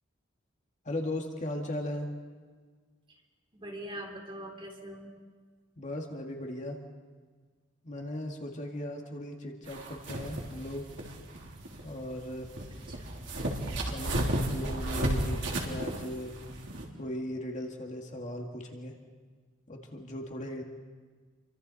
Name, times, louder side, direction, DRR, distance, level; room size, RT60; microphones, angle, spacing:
voice 1, 0.8-2.1 5.8-6.8 7.8-10.9 11.8-12.5 13.9-16.3 17.0-19.0 19.7-20.6, left 1 dB, 40° left, 1 dB, 2.0 m, -37 dB
voice 2, 3.5-5.1 12.9-13.1, right 1 dB, 25° right, 1 dB, 3.5 m, -42 dB
sound 1, 9.7-16.8, right 1 dB, 65° right, 3.4 m, -34 dB
29.0 x 24.5 x 4.2 m, 1.5 s
head